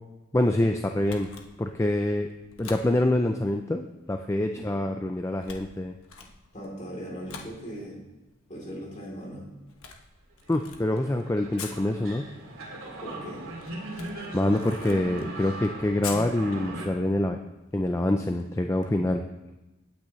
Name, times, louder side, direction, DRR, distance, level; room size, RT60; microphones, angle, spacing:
voice 1, 0.3-1.3 1.6-2.3 2.6-5.9 10.5-12.3 14.3-17.4 17.7-19.2, left 1 dB, 15° left, 5 dB, 0.4 m, -26 dB
Camera, 1.0-18.9, left 6 dB, 85° left, 1.2 m, -48 dB
voice 2, 6.5-8.0 8.5-9.4 13.0-13.4, equal, 35° left, -3 dB, 3.2 m, -39 dB
sound 1, 10.6-16.9, right 1 dB, 80° right, 2.5 m, -39 dB
16.5 x 9.0 x 3.1 m, 1.0 s
head